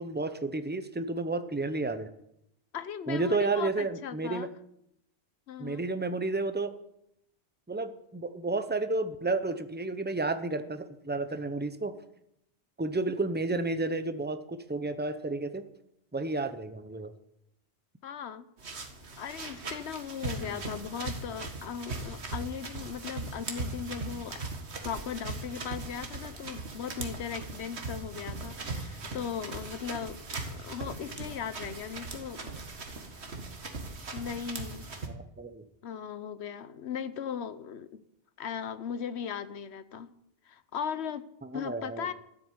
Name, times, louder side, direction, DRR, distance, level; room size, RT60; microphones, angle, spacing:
voice 1, 0.0-2.1 3.1-4.5 5.6-6.7 7.7-11.9 12.8-15.6 16.1-17.1 20.4-20.6 35.1-35.6 41.5-42.1, right 3 dB, 10° right, 10 dB, 0.8 m, -31 dB
voice 2, 2.7-4.5 5.5-5.8 18.0-18.5 19.2-24.5 24.8-30.2 30.5-32.5 34.1-34.9 35.8-38.0 38.4-40.1 40.5-41.3 41.5-42.1, left 8 dB, 85° left, 14 dB, 1.1 m, -38 dB
sound 1, 18.6-35.1, right 3 dB, 85° right, 2.0 m, -39 dB
13.5 x 7.8 x 9.4 m, 0.78 s
omnidirectional pair, 1.1 m